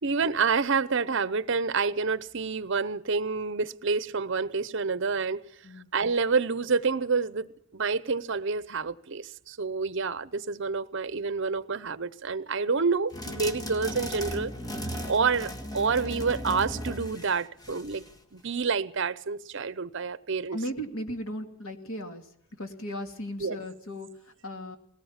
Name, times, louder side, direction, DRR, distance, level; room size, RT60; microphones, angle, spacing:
voice 1, 0.0-5.4 5.9-7.5 7.7-14.5 15.1-18.0 18.3-20.6 23.4-23.6, right 4 dB, 60° right, 0.8 m, -28 dB
sound 1, 13.1-18.2, equal, 20° left, 1.8 m, -36 dB
voice 2, 20.5-22.3 22.6-24.8, equal, 75° left, 2.5 m, -36 dB
20.5 x 18.0 x 7.3 m
head